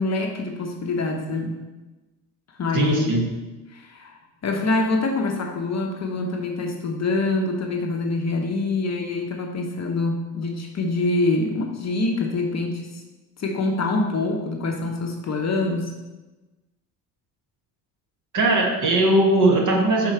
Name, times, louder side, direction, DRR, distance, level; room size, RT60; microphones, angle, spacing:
voice 1, 0.0-1.6 2.6-3.1 3.7-4.1 4.4-13.0 13.4-15.9, left 2 dB, 35° left, 2 dB, 0.9 m, -25 dB
voice 2, 2.7-3.3 18.3-20.1, right 2 dB, 40° right, 0 dB, 1.6 m, -19 dB
5.4 x 4.8 x 4.4 m, 1.1 s
hypercardioid pair, 55°, 48 cm